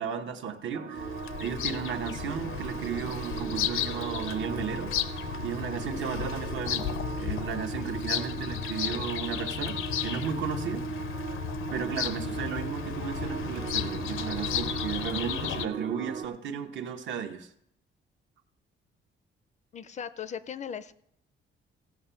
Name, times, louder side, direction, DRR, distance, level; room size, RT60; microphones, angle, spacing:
voice 1, 0.0-4.9 5.4-6.9 7.2-11.2 11.7-17.5, right 7 dB, 65° right, 7 dB, 1.0 m, -34 dB
sound 1, 0.7-16.3, right 6 dB, 40° right, 0.5 m, -38 dB
Bird vocalization bird call bird song, 1.0-15.7, left 11 dB, 90° left, 0.6 m, -34 dB
voice 2, 19.7-20.9, left 8 dB, 35° left, 14 dB, 0.4 m, -38 dB
16.5 x 6.0 x 5.6 m, 0.76 s
cardioid pair, 175°, 20 cm